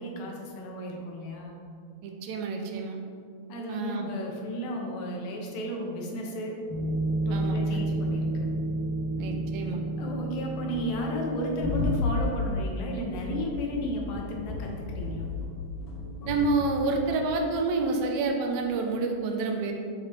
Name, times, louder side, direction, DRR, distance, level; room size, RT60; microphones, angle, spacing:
voice 1, 0.0-1.6 3.5-6.6 7.3-8.5 9.7-15.3, equal, 80° left, 0 dB, 2.2 m, -34 dB
voice 2, 2.0-3.0 3.7-4.1 7.3-7.6 9.2-9.8 16.3-19.7, right 3 dB, 80° right, 2 dB, 1.9 m, -28 dB
sound 1, 6.7-18.2 18.5-18.7, equal, 55° left, 2.5 m, -31 dB
5.8 x 5.4 x 3.5 m, 2.3 s
omnidirectional pair, 3.3 m